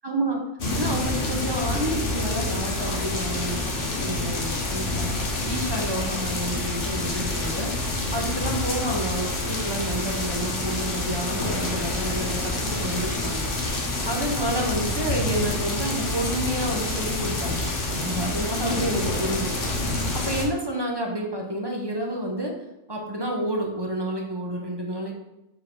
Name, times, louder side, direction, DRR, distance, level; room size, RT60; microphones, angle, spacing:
voice 1, 0.0-0.4 0.8-13.5 14.0-17.7 17.9-19.6 19.9-22.5 22.9-25.1, right 1 dB, 25° right, 0 dB, 0.8 m, -29 dB
sound 1, 0.6-20.5, left 2 dB, 50° left, 1.1 m, -27 dB
5.6 x 3.9 x 4.5 m, 0.89 s
omnidirectional pair, 1.3 m